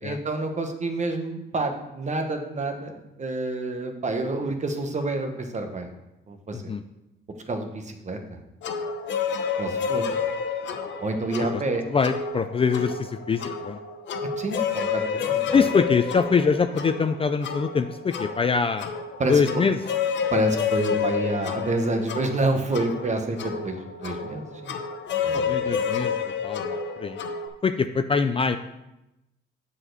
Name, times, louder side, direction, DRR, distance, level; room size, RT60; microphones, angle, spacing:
voice 1, 0.0-2.9 3.2-5.9 6.3-6.7 7.5-8.4 9.6-10.0 11.0-11.9 14.4-15.7 19.2-19.4 20.3-24.8 25.2-25.6 25.9-26.1, right 2 dB, 35° right, 5 dB, 1.2 m, -28 dB
sound 1, 8.6-27.5, left 6 dB, 65° left, 0.8 m, -30 dB
voice 2, 11.9-13.8 15.5-18.9 19.3-19.8 25.3-27.2 27.6-28.6, left 5 dB, 30° left, 9 dB, 0.4 m, -24 dB
7.4 x 4.2 x 6.6 m, 0.92 s
cardioid pair, 90°, 20 cm